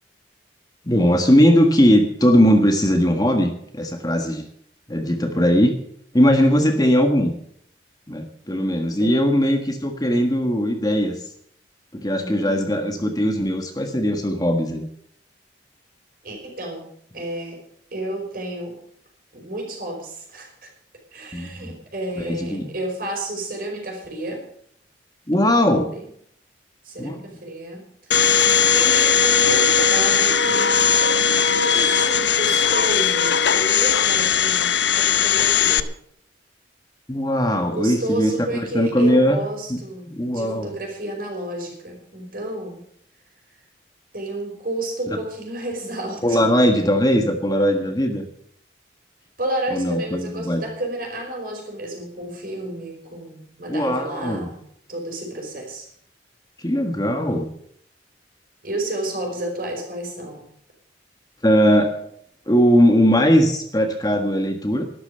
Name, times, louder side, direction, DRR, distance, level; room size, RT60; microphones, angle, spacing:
voice 1, 0.8-4.4 4.9-5.7 6.1-7.3 8.1-11.2 11.9-14.8 21.3-21.7 22.2-22.7 25.3-25.9 27.0-27.2 37.1-39.4 39.7-39.8 40.1-40.7 45.1-45.2 46.2-48.2 49.7-50.6 53.7-54.5 56.6-57.5 61.4-61.9 62.5-64.8, equal, 20° left, 4 dB, 1.4 m, -19 dB
voice 2, 12.2-13.2 16.2-16.9 17.1-17.6 17.9-18.8 19.3-20.7 21.1-24.4 25.4-26.1 26.8-28.4 28.7-35.9 37.7-42.8 44.1-46.5 49.4-54.6 54.9-55.9 58.6-60.5, right 1 dB, 50° right, 1 dB, 5.3 m, -31 dB
Domestic sounds home sounds, 28.1-35.8, left 7 dB, 70° left, 0.7 m, -18 dB
12.0 x 12.0 x 6.8 m, 0.67 s
head